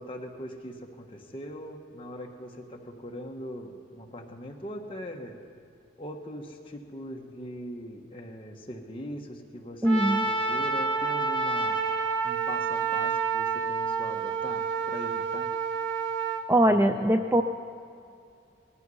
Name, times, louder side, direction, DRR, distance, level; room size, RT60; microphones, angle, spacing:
voice 1, 0.0-5.3 6.0-11.8 12.2-15.5 16.7-17.2, equal, 25° left, 1 dB, 1.4 m, -41 dB
voice 2, 9.8-10.3 16.5-17.4, right 1 dB, 10° right, 6 dB, 0.3 m, -21 dB
Trumpet, 9.8-16.4, right 5 dB, 85° right, 1.2 m, -29 dB
19.0 x 13.0 x 5.6 m, 2.4 s
head